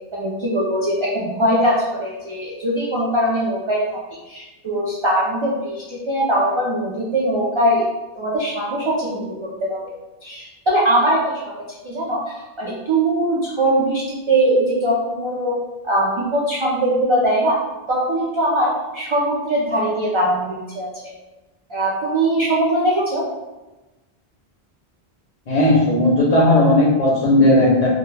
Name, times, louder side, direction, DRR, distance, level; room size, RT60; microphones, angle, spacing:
voice 1, 0.1-4.0 4.3-7.9 8.2-9.9 10.2-11.5 11.8-15.6 15.8-17.6 17.9-20.9 21.7-23.2, right 1 dB, 55° right, -5 dB, 0.3 m, -21 dB
voice 2, 25.5-27.9, left 1 dB, 45° left, -5 dB, 0.6 m, -15 dB
2.1 x 2.1 x 3.1 m, 1.1 s
omnidirectional pair, 1.0 m